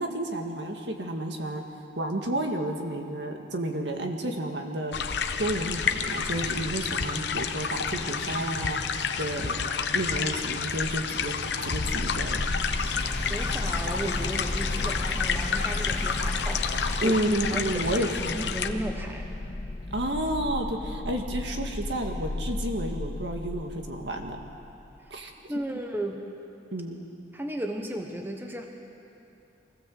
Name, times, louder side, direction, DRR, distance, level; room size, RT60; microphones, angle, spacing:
voice 1, 0.0-1.6 2.0-5.1 5.4-8.8 9.2-9.6 9.9-12.5 17.0-18.4 19.9-24.4 25.1-25.3 26.7-27.0, right 1 dB, 70° right, 3 dB, 2.0 m, -31 dB
sound 1, 4.9-18.7, left 6 dB, 65° left, 0.9 m, -30 dB
sound 2, 11.8-24.7, left 2 dB, 25° left, 0.6 m, -34 dB
sound 3, 12.8-17.2, equal, 40° right, 7.1 m, -43 dB
voice 2, 13.3-17.2 17.5-18.0 18.3-19.3 25.5-26.2 27.3-28.7, right 1 dB, 10° right, 3 dB, 1.3 m, -34 dB
24.0 x 16.5 x 7.8 m, 2.8 s
head